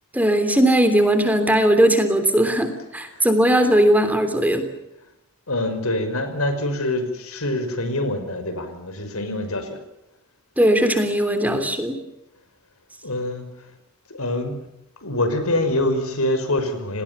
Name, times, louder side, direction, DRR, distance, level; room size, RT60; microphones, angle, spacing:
voice 1, 0.1-4.7 10.6-12.0, right 1 dB, 5° right, 7 dB, 3.2 m, -18 dB
voice 2, 5.5-9.8 13.0-13.5 14.1-14.6 15.0-17.0, left 1 dB, 80° left, 9 dB, 5.7 m, -25 dB
30.0 x 19.5 x 7.1 m, 0.88 s
head